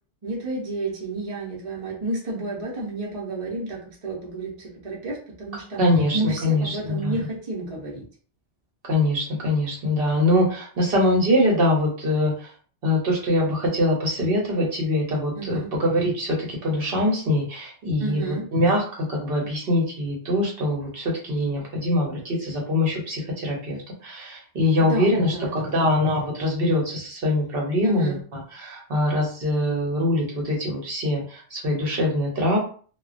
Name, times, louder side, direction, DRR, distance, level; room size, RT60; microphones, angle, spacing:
voice 1, 0.2-5.8 6.1-8.0 15.3-15.7 18.0-18.4 24.8-26.0 27.8-28.2, right 2 dB, 35° right, -4 dB, 0.7 m, -31 dB
voice 2, 5.8-7.1 8.9-12.3 12.8-18.8 19.1-28.2 28.6-32.6, left 1 dB, 60° right, -1 dB, 1.0 m, -23 dB
2.3 x 2.2 x 2.4 m, 0.42 s
omnidirectional pair, 1.2 m